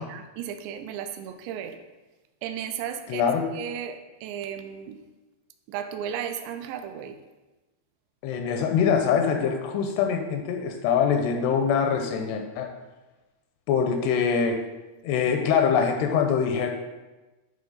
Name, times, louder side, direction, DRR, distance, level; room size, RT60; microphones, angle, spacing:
voice 1, 0.0-1.8 2.4-3.3 3.5-5.0 5.7-7.2, right 9 dB, 85° right, 8 dB, 2.7 m, -35 dB
voice 2, 3.1-3.5 8.2-12.7 13.7-14.6 15.0-16.7, left 6 dB, 85° left, 4 dB, 2.5 m, -24 dB
10.5 x 3.6 x 3.9 m, 1.1 s
omnidirectional pair, 5.0 m